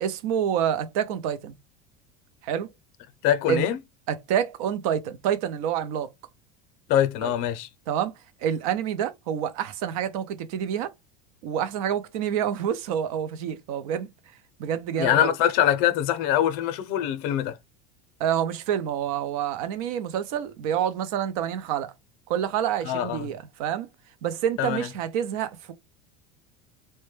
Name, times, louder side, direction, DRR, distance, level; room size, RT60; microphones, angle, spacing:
voice 1, 0.0-1.6 2.4-2.7 3.5-3.7 4.1-6.1 7.2-7.3 7.9-8.1 8.4-10.9 11.4-14.1 14.6-15.3 18.2-21.9 22.3-23.9 24.2-25.7, right 9 dB, 75° right, 0.5 m, -27 dB
voice 2, 3.2-3.8 6.9-7.7 15.0-17.6 22.8-23.2 24.6-24.9, left 11 dB, 60° left, 0.6 m, -23 dB
2.1 x 2.1 x 3.1 m
supercardioid pair, 135°, 18 cm